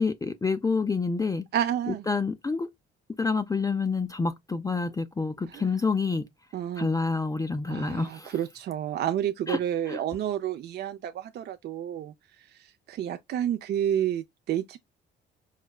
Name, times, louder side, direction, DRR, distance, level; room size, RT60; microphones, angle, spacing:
voice 1, 0.0-1.5 1.9-2.7 3.2-6.3 6.8-8.3 9.5-9.6 9.9-10.0, left 4 dB, 15° left, 0.4 m, -28 dB
voice 2, 1.5-2.1 5.5-5.7 6.5-6.9 7.7-12.1 12.4-14.8, right 10 dB, 55° right, 0.4 m, -30 dB
4.8 x 2.1 x 2.2 m
cardioid pair, 90°, 20 cm